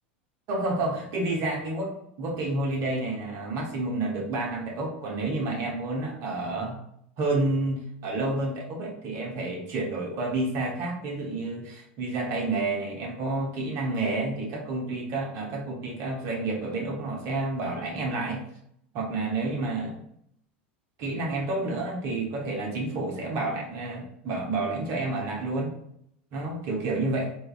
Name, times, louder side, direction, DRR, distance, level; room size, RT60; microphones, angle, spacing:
voice 1, 0.5-6.8 7.2-18.4 18.9-20.0 21.0-25.7 26.3-27.3, right 2 dB, 50° right, 0 dB, 0.9 m, -29 dB
3.9 x 2.5 x 2.4 m, 0.71 s
hypercardioid pair, 95°, 6 cm